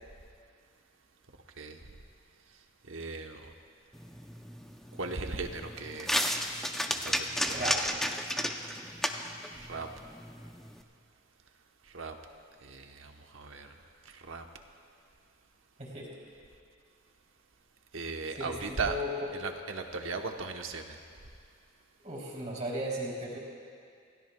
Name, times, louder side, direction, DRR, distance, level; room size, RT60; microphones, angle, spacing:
voice 1, 2.9-3.5 4.9-6.2 6.9-7.6 9.6-9.9 11.9-12.1 12.6-13.7 14.0-14.4 17.9-19.0 19.4-21.0, right 4 dB, 70° right, 4 dB, 1.0 m, -37 dB
sound 1, 3.9-10.8, equal, ahead, 0.6 m, -34 dB
voice 2, 7.5-7.9 15.8-16.1 18.3-19.3 22.0-23.4, equal, 35° right, -4 dB, 3.1 m, -36 dB
27.5 x 16.0 x 2.3 m, 2.3 s
head